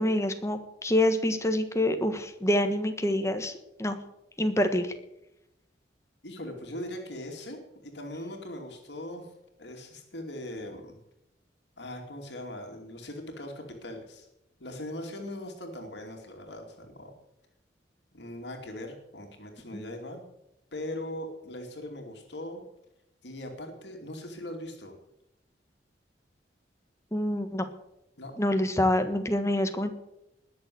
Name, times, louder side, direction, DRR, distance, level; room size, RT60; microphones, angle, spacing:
voice 1, 0.0-3.5 3.8-4.0 4.4-4.9 19.7-19.8 27.1-27.7 28.4-29.9, left 1 dB, 15° left, 7 dB, 1.4 m, -26 dB
voice 2, 6.2-9.3 9.6-11.0 11.8-14.3 14.6-17.1 18.1-20.2 20.7-22.6 23.2-24.9 28.2-28.4, left 1 dB, 70° left, 2 dB, 2.6 m, -40 dB
20.0 x 7.0 x 7.9 m, 0.86 s
head